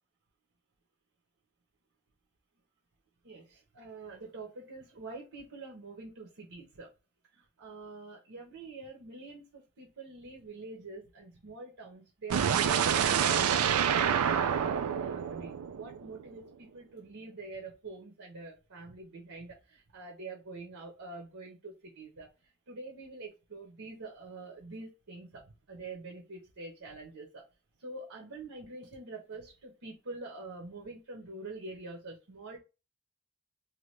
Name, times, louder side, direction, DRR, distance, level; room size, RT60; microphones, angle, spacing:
voice 1, 3.2-6.9 7.3-22.3 22.7-27.4 27.8-32.6, right 3 dB, 75° right, -1 dB, 0.9 m, -46 dB
sound 1, 12.3-16.3, right 8 dB, 90° right, 0.4 m, -27 dB
2.8 x 2.3 x 3.2 m, 0.28 s
head